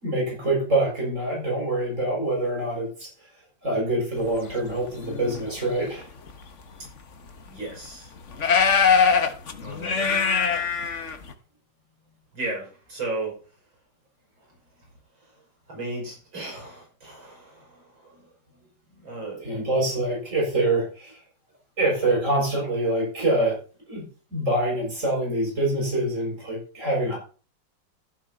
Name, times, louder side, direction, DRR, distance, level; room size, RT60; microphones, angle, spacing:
voice 1, 0.0-3.1 3.6-6.0 19.4-21.2 21.8-23.5 23.9-24.0 24.3-27.2, right 2 dB, 40° right, -2 dB, 7.3 m, -25 dB
sound 1, 4.8-5.4 6.3-6.4 6.9-7.0 7.6-7.7 8.3-11.3, left 6 dB, 45° left, 1.5 m, -22 dB
voice 2, 7.5-8.1 9.6-10.2 12.3-13.4 15.2-15.3 15.7-18.2 19.0-19.4, right 2 dB, 90° right, -1 dB, 7.0 m, -35 dB
14.5 x 7.3 x 4.2 m, 0.37 s
omnidirectional pair, 2.0 m